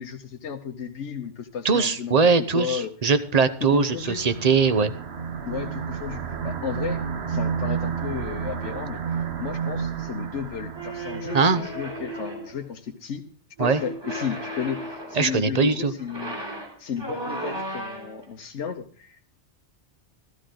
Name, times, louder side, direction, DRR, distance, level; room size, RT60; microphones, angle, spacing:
voice 1, 0.0-2.2 2.5-2.9 3.6-4.2 5.4-7.0 7.3-13.2 13.6-16.4 16.8-19.3, left 7 dB, 85° left, 3 dB, 1.3 m, -33 dB
voice 2, 1.6-4.9 11.3-11.6 13.6-13.8 15.1-15.9, right 5 dB, 35° right, 12 dB, 0.9 m, -21 dB
sound 1, 3.5-12.1, right 7 dB, 70° right, 1.2 m, -31 dB
sound 2, 10.7-12.6 13.6-15.4 16.0-18.3, right 1 dB, 20° right, 3.5 m, -35 dB
14.5 x 13.5 x 3.8 m, 0.42 s
omnidirectional pair, 1.2 m